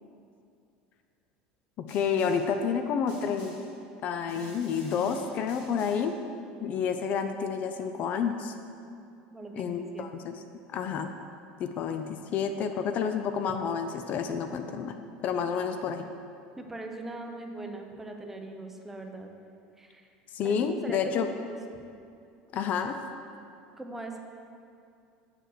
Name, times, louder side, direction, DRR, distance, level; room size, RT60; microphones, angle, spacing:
voice 1, 1.8-3.5 4.0-6.1 6.6-8.5 9.5-10.3 10.7-11.1 11.6-15.0 15.2-16.1 20.3-21.3 22.5-23.0, left 6 dB, 50° left, 7 dB, 0.5 m, -29 dB
Snare drum, 1.9-2.6 3.1-3.8 4.3-6.2, left 2 dB, 70° left, 1.9 m, -45 dB
voice 2, 9.3-10.3 16.6-19.3 19.8-20.1 20.4-21.6 23.8-24.2, right 2 dB, 10° right, 3 dB, 0.8 m, -41 dB
7.7 x 4.5 x 6.6 m, 2.5 s
supercardioid pair, 115°, 3 cm